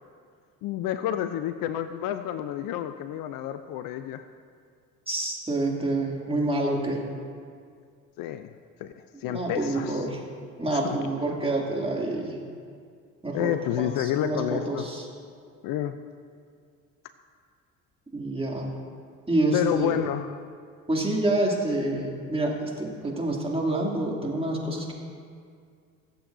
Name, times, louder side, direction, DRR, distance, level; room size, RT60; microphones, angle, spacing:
voice 1, 0.6-4.3 8.2-8.5 8.8-10.1 10.6-11.0 13.3-14.9 15.6-16.0 19.5-20.3, left 11 dB, 55° left, 10 dB, 0.6 m, -29 dB
voice 2, 5.1-7.1 9.3-10.2 10.6-12.4 13.2-15.1 18.1-18.7 19.3-20.0 20.9-24.9, right 2 dB, 15° right, -2 dB, 2.7 m, -27 dB
23.0 x 7.8 x 2.7 m, 2.2 s
hypercardioid pair, 55°, 40 cm